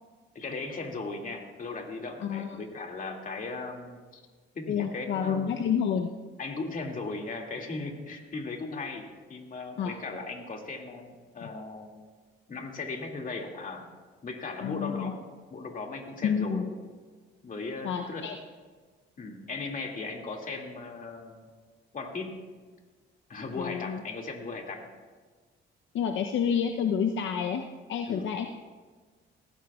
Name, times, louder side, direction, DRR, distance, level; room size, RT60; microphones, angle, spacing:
voice 1, 0.3-4.2 4.5-5.6 6.4-11.9 12.5-13.8 14.2-15.2 15.5-16.7 17.4-18.3 19.2-21.5 21.9-22.3 23.3-24.8 28.1-28.3, left 3 dB, 40° left, 1 dB, 2.3 m, -37 dB
voice 2, 2.2-2.6 4.7-6.1 9.8-9.9 11.4-11.5 14.6-15.1 16.2-16.7 17.8-18.4 23.6-24.0 25.9-27.6 27.9-28.5, left 7 dB, 75° left, 4 dB, 0.8 m, -29 dB
19.5 x 15.5 x 2.4 m, 1.4 s
cardioid pair, 90°, 20 cm